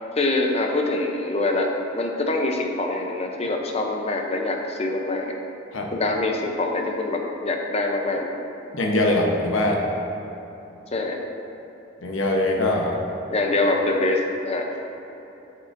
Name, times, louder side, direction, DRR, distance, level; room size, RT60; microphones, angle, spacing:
voice 1, 0.2-5.3 5.9-8.3 10.9-11.2 13.3-14.7, left 2 dB, 30° left, 2 dB, 0.6 m, -24 dB
voice 2, 8.7-9.8 12.0-13.0, left 1 dB, 85° left, 0 dB, 0.9 m, -22 dB
8.1 x 7.7 x 2.6 m, 3.0 s
head